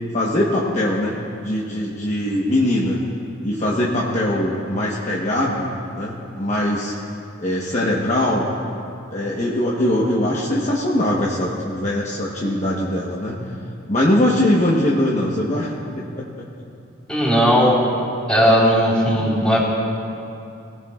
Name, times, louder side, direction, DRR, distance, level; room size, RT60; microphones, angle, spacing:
voice 1, 0.1-3.0 3.4-5.7 5.9-6.9 7.4-8.5 9.1-13.4 13.9-16.4, left 1 dB, 35° left, -4 dB, 1.1 m, -21 dB
voice 2, 17.1-17.8 18.3-19.6, equal, 5° left, -6 dB, 3.7 m, -16 dB
22.5 x 16.5 x 2.4 m, 2.6 s
head